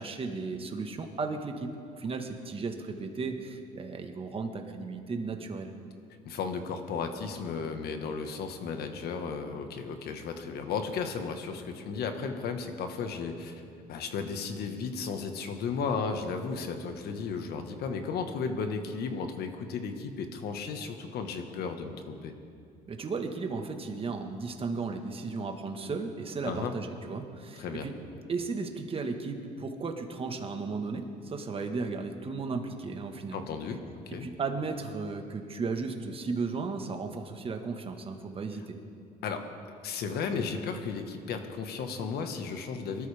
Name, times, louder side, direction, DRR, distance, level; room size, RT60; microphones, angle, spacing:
voice 1, 0.0-1.7 2.0-5.7 22.9-27.9 28.3-33.4 34.2-38.8, right 4 dB, 35° right, 5 dB, 1.5 m, -35 dB
voice 2, 6.2-13.6 13.9-22.3 26.4-26.7 27.6-27.9 33.3-33.8 34.1-34.3 39.2-39.4 39.8-43.1, left 5 dB, 70° left, 6 dB, 1.5 m, -34 dB
23.5 x 13.0 x 3.5 m, 2.5 s
cardioid pair, 110°, 17 cm